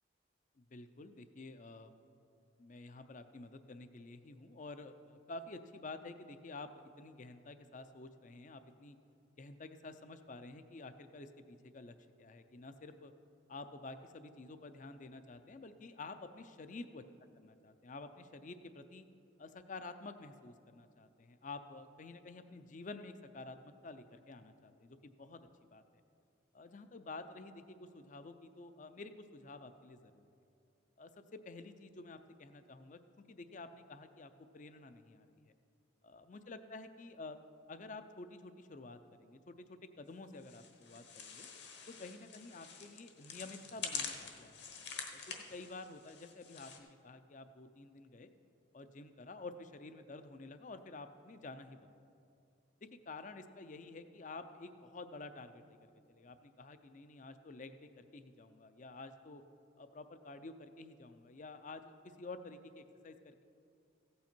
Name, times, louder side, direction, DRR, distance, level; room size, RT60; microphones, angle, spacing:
voice 1, 0.6-1.9 2.6-9.0 9.4-13.1 13.5-17.0 17.4-19.1 19.4-25.4 25.7-25.8 26.5-30.3 31.0-33.0 33.3-35.4 36.0-37.4 37.7-41.5 41.9-48.3 48.7-51.9 52.9-55.6 56.1-59.4 59.8-63.4, left 3 dB, 40° left, 10 dB, 0.5 m, -50 dB
sound 1, 40.4-46.8, left 6 dB, 55° left, 1.1 m, -46 dB
15.5 x 8.5 x 4.4 m, 2.5 s
head